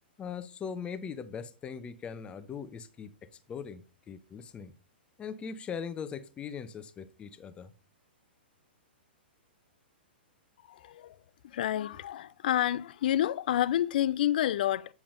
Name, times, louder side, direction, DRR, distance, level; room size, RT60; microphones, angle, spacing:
voice 1, 0.2-4.7 5.2-7.7, left 6 dB, 20° left, 0.7 m, -40 dB
voice 2, 10.7-14.9, left 12 dB, 55° left, 0.4 m, -29 dB
8.5 x 7.0 x 2.5 m
figure-of-eight pair, 110°, 6 cm